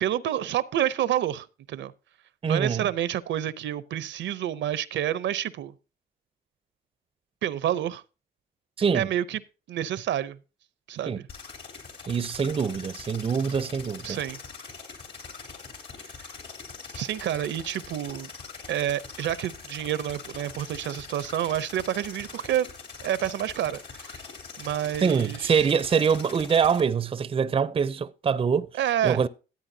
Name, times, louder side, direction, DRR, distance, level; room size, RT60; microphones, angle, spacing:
voice 1, 0.0-1.9 2.5-5.7 7.4-8.0 8.9-9.4 9.7-10.4 10.9-11.3 14.0-14.4 16.9-18.3 18.7-22.7 23.0-24.2 24.6-25.7 28.8-29.2, right 11 dB, 70° right, 0.6 m, -28 dB
voice 2, 2.4-2.9 8.8-9.1 11.1-11.2 12.1-14.2 25.0-28.7 29.0-29.3, right 6 dB, 30° right, 0.5 m, -24 dB
sound 1, 11.3-26.8, left 5 dB, 60° left, 3.2 m, -43 dB
14.0 x 8.7 x 2.7 m
cardioid pair, 90°, 20 cm